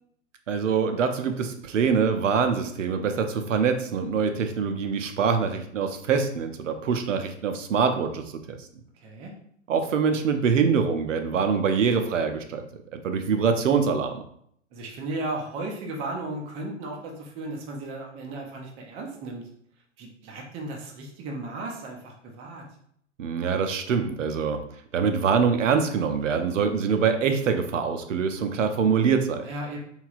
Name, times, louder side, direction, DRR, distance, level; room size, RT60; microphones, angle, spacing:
voice 1, 0.5-8.7 9.7-12.7 12.9-14.2 23.2-24.6 24.9-29.5, right 6 dB, 75° right, 7 dB, 0.5 m, -24 dB
voice 2, 9.0-9.3 14.7-19.4 20.0-22.7 29.4-29.8, right 2 dB, 15° right, 0 dB, 0.3 m, -35 dB
3.1 x 2.8 x 2.4 m, 0.67 s
figure-of-eight pair, 100°, 38 cm